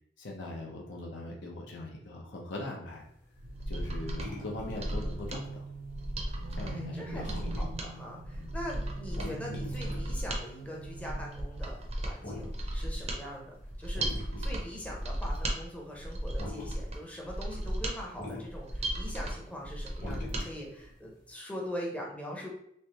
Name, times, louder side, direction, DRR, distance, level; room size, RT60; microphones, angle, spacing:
voice 1, 0.2-3.0 3.7-5.6 6.5-7.4 8.4-8.5 20.0-20.2, left 2 dB, 70° left, -1 dB, 0.7 m, -41 dB
sound 1, 2.9-8.5 8.8-13.3 13.6-14.8 15.1-15.4 15.7-16.0 16.4-16.7 17.1-17.4 17.7-18.5 18.7-20.9 21.2-21.3, left 1 dB, 45° left, 1.0 m, -43 dB
Mechanisms, 3.4-20.5 20.8-20.9, right 1 dB, 35° right, 0.5 m, -36 dB
sound 2, 3.4-11.8, right 3 dB, 90° right, 0.4 m, -44 dB
voice 2, 6.6-22.5, equal, 5° left, -2 dB, 0.6 m, -42 dB
3.3 x 3.2 x 2.8 m, 0.71 s
head